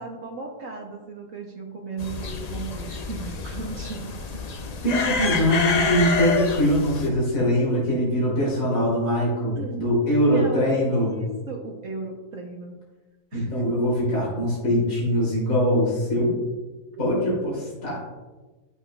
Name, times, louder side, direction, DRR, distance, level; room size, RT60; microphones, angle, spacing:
voice 1, 0.0-4.4 9.6-9.8 10.1-12.8 13.3-13.8 16.9-17.1, right 3 dB, 65° right, 1 dB, 1.2 m, -36 dB
sound 1, 2.0-7.1, left 4 dB, 75° left, 0.3 m, -28 dB
voice 2, 4.8-11.1 13.3-16.4 17.0-18.0, equal, 60° left, -7 dB, 3.1 m, -22 dB
13.0 x 6.0 x 2.2 m, 1.2 s
omnidirectional pair, 1.6 m